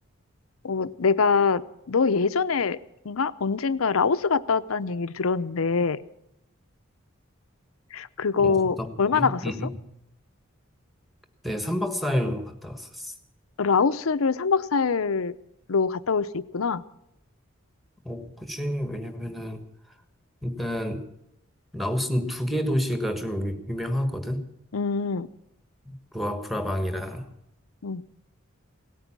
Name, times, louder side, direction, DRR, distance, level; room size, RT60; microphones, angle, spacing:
voice 1, 0.6-1.6 1.9-2.8 3.0-6.0 7.9-9.4 13.6-15.4 15.7-16.8 24.7-25.3 27.8-28.0, left 5 dB, 90° left, 13 dB, 0.6 m, -24 dB
voice 2, 8.4-9.8 11.4-13.1 18.0-19.7 20.4-21.1 21.7-24.4 25.8-27.3, equal, ahead, 7 dB, 1.4 m, -29 dB
17.5 x 9.1 x 8.7 m, 0.84 s
head